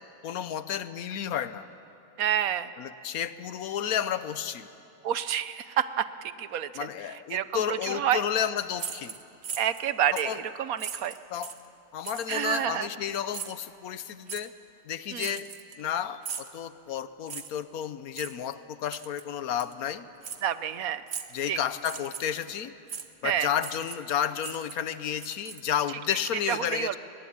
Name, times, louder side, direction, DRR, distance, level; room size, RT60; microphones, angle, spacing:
voice 1, 0.2-1.7 2.8-4.7 6.7-9.1 10.1-10.4 11.3-11.5 11.9-14.5 14.9-15.5 15.8-20.1 21.3-22.7 23.2-27.0, left 9 dB, 75° left, 14 dB, 1.2 m, -31 dB
voice 2, 2.2-2.7 5.0-6.7 7.3-8.2 9.6-11.1 12.3-12.9 15.1-15.4 20.4-21.0 21.5-21.6 23.2-23.5 26.5-27.0, right 10 dB, 70° right, 14 dB, 1.2 m, -28 dB
sound 1, 8.8-9.8 10.2-10.4 10.8-11.7 12.0-12.4 13.3-13.7 14.3-14.5 15.2-15.9 16.2-16.6 17.3-17.6 18.1-18.3 18.9-19.2 19.6-19.7 20.2-20.4 21.1-21.4 21.8-22.4 22.9-23.1 23.6-24.1 24.4-25.9, right 7 dB, 50° right, 1.2 m, -39 dB
22.5 x 19.5 x 8.7 m, 2.7 s
omnidirectional pair, 1.6 m